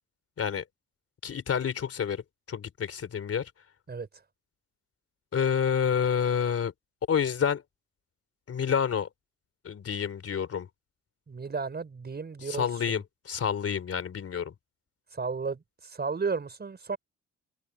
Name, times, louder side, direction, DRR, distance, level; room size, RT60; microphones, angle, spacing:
voice 1, 1.2-2.2 2.5-3.5 5.3-6.7 7.1-7.6 8.5-9.1 9.6-10.7 12.5-14.5, left 7 dB, 50° left, 3.4 m, -28 dB
voice 2, 11.3-13.0 15.1-17.0, right 4 dB, 35° right, 6.0 m, -33 dB
open air
cardioid pair, 90°, 30 cm